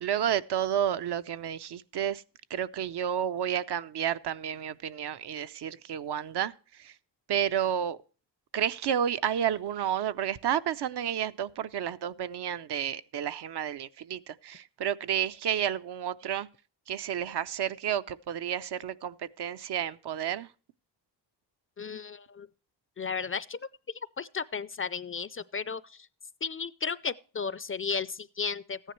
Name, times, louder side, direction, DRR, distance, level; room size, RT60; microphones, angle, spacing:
voice 1, 0.0-2.2 2.5-6.5 6.8-6.9 7.3-8.0 8.5-16.5 16.9-20.5, right 9 dB, 65° right, 0.7 m, -31 dB
voice 2, 21.8-22.5 23.0-23.6 23.9-26.1 26.4-28.8, left 5 dB, 30° left, 0.4 m, -34 dB
14.5 x 10.0 x 3.1 m
cardioid pair, 90°, 43 cm